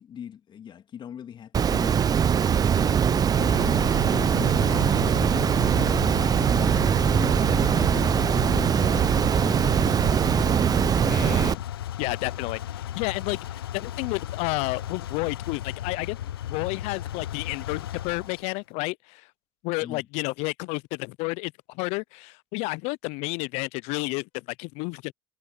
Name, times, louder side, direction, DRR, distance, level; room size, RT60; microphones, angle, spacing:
voice 1, 0.0-6.5 7.1-8.2 8.5-10.6 19.8-20.1, left 9 dB, 40° left, 2.9 m, -41 dB
Water, 1.5-11.5, right 8 dB, 30° right, 0.8 m, -22 dB
sound 1, 3.4-18.5, left 11 dB, 80° left, 1.0 m, -35 dB
voice 2, 11.1-11.6 12.0-19.2 19.6-25.1, left 27 dB, 60° left, 0.7 m, -31 dB
hypercardioid pair, 75°, 12 cm